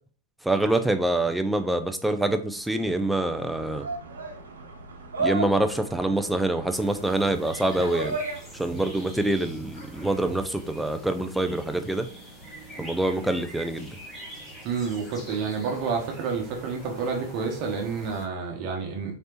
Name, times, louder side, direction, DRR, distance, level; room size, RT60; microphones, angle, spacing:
voice 1, 0.4-3.9 5.2-8.2 8.5-12.1 12.8-13.9, right 1 dB, 5° right, 0.5 m, -25 dB
sound 1, 2.5-8.9, right 3 dB, 85° right, 0.9 m, -35 dB
sound 2, 6.7-18.3, right 1 dB, 20° left, 1.5 m, -44 dB
voice 2, 14.6-19.2, right 5 dB, 45° right, 1.1 m, -29 dB
4.2 x 3.2 x 2.9 m
hypercardioid pair, 115°, 0 cm